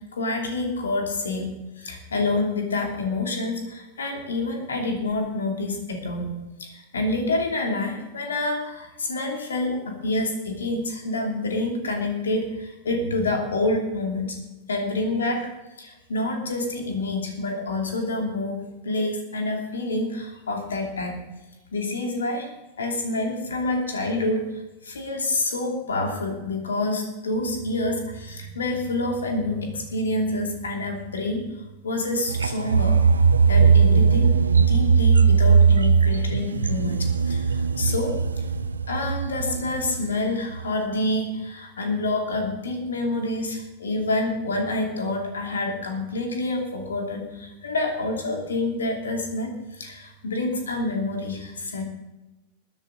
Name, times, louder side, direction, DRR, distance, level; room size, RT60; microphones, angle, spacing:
voice 1, 0.1-1.5 1.8-6.3 6.6-14.4 14.7-15.5 15.8-18.6 18.8-21.2 21.7-22.5 22.8-24.5 24.8-31.5 31.8-33.0 33.5-37.0 37.2-38.2 38.9-51.8, left 2 dB, 70° left, 2 dB, 2.8 m, -27 dB
sound 1, 32.3-40.1 40.5-40.7, right 5 dB, 75° right, 0.6 m, -19 dB
21.5 x 10.5 x 3.9 m, 1.1 s
figure-of-eight pair, 90°, 0 cm